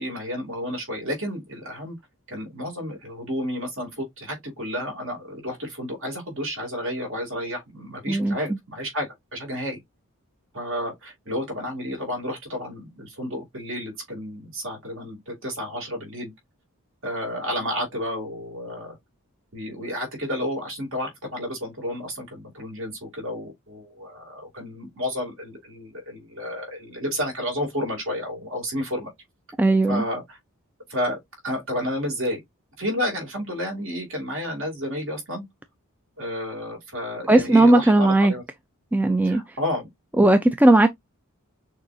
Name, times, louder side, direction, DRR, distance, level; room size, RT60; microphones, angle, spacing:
voice 1, 0.0-2.0 2.3-9.8 10.5-16.3 17.0-19.0 19.5-29.1 29.9-30.4 30.9-31.2 31.4-32.4 32.8-35.4 36.2-38.4 39.2-39.9, equal, 60° right, 2.8 m, -31 dB
voice 2, 8.1-8.4 29.6-30.0 37.3-38.3 38.9-39.4 40.2-40.9, right 2 dB, 5° right, 0.3 m, -17 dB
6.4 x 2.8 x 2.7 m
head